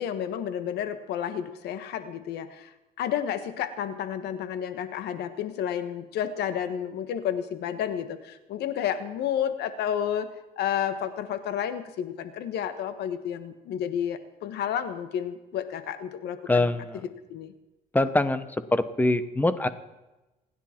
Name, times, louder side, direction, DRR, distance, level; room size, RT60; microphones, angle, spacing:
voice 1, 0.0-2.7 3.0-10.3 10.6-16.7 17.3-17.5, left 9 dB, 75° left, 11 dB, 1.4 m, -31 dB
voice 2, 16.5-17.0 17.9-18.4 18.7-19.7, left 2 dB, 10° left, 12 dB, 1.0 m, -23 dB
29.0 x 10.5 x 4.5 m, 1.0 s
cardioid pair, 110°, 17 cm